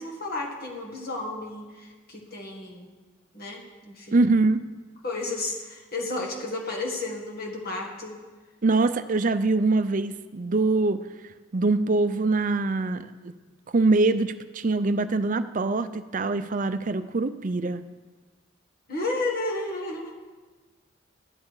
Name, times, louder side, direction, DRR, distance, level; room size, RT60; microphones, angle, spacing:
voice 1, 0.0-2.9 3.3-4.2 5.0-8.1 18.9-20.1, left 2 dB, 50° left, -1 dB, 1.8 m, -32 dB
voice 2, 4.1-4.6 8.6-11.0 11.5-13.3 13.7-17.8, right 3 dB, 40° right, 12 dB, 0.5 m, -23 dB
12.5 x 9.6 x 4.8 m, 1.3 s
head